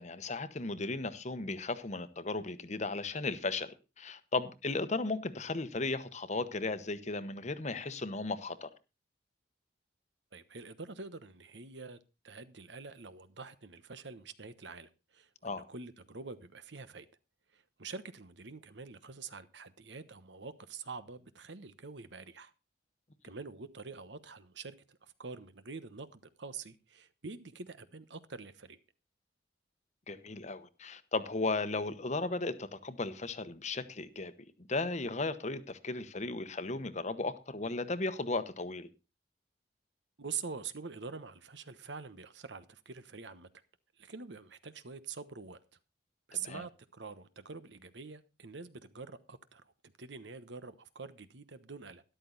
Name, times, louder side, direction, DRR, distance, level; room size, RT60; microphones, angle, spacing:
voice 1, 0.0-8.7 15.4-15.6 30.1-34.3 34.7-38.9 46.3-46.6, left 3 dB, 40° left, 1.0 m, -35 dB
voice 2, 10.3-12.0 12.2-17.0 17.5-22.5 23.2-28.8 40.2-43.5 44.0-45.6 46.3-49.6 50.0-52.0, right 5 dB, 70° right, 1.1 m, -45 dB
13.0 x 11.5 x 4.0 m
head